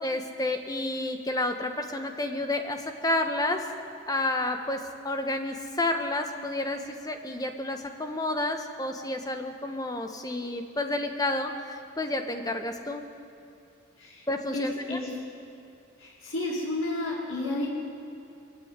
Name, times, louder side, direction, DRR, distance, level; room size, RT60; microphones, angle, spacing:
voice 1, 0.0-3.7 4.1-13.0 14.3-15.0, left 2 dB, 20° left, 5 dB, 1.4 m, -30 dB
voice 2, 14.5-15.1 16.0-17.7, left 2 dB, 80° left, -5 dB, 5.1 m, -31 dB
21.5 x 16.0 x 9.9 m, 2.6 s
head